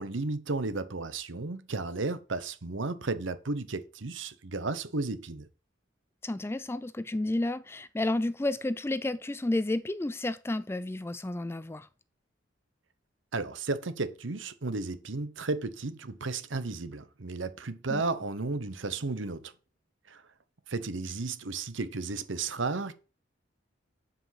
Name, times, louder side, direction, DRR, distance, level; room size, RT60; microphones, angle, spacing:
voice 1, 0.0-5.5 13.3-19.5 20.1-20.2 20.7-22.9, right 3 dB, 80° right, 0.9 m, -33 dB
voice 2, 6.2-11.9 17.9-18.0, left 2 dB, 15° left, 0.3 m, -31 dB
8.6 x 5.0 x 5.8 m
head